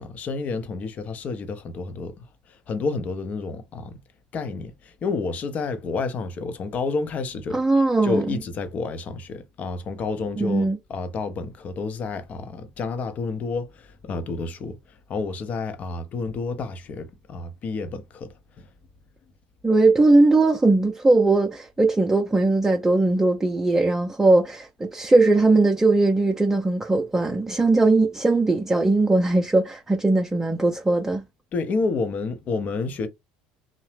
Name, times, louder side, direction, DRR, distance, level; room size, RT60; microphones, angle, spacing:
voice 1, 0.0-4.0 4.3-7.6 8.0-14.8 15.1-18.7 31.5-33.1, left 4 dB, 45° left, 0.6 m, -30 dB
voice 2, 7.5-8.4 10.4-10.8 19.6-31.2, right 2 dB, 15° right, 0.5 m, -19 dB
2.7 x 2.0 x 3.2 m
hypercardioid pair, 80°, 4 cm